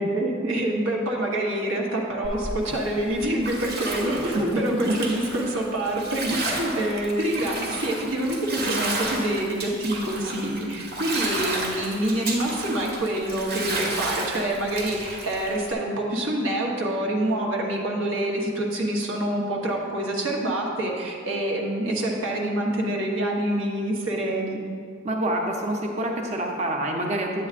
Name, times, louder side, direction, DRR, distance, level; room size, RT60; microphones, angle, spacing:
voice 1, 0.0-24.6, right 1 dB, 90° right, -1 dB, 1.1 m, -26 dB
Bathtub (filling or washing), 2.2-15.7, right 2 dB, 55° right, 1.2 m, -32 dB
voice 2, 25.0-27.5, right 1 dB, 35° right, 1 dB, 0.7 m, -27 dB
8.5 x 8.5 x 2.5 m, 2.2 s
head